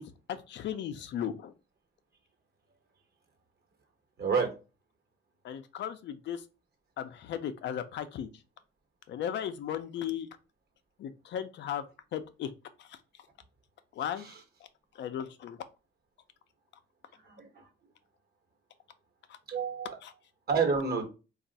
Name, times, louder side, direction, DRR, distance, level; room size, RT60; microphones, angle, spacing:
voice 1, 0.3-1.5 5.4-6.4 7.0-8.3 9.1-10.3 11.0-11.8 12.1-12.5 14.0-14.3 15.0-15.6 20.0-20.1, left 9 dB, 65° left, 10 dB, 0.4 m, -36 dB
voice 2, 4.2-4.5 14.2-14.4 17.2-17.6 19.5-20.0 20.5-21.1, right 5 dB, 50° right, 4 dB, 1.1 m, -29 dB
2.5 x 2.3 x 3.9 m, 0.31 s
cardioid pair, 90°, 20 cm